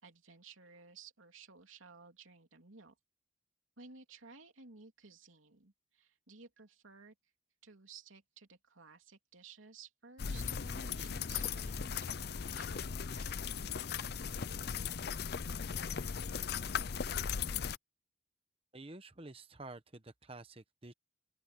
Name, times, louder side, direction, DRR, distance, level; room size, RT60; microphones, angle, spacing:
voice 1, 0.0-2.9 3.8-7.1 7.6-13.3, right 5 dB, 85° right, 3.2 m, -56 dB
sound 1, 10.2-17.8, left 6 dB, 50° left, 0.5 m, -38 dB
voice 2, 18.7-20.9, right 2 dB, 30° right, 1.0 m, -50 dB
open air
head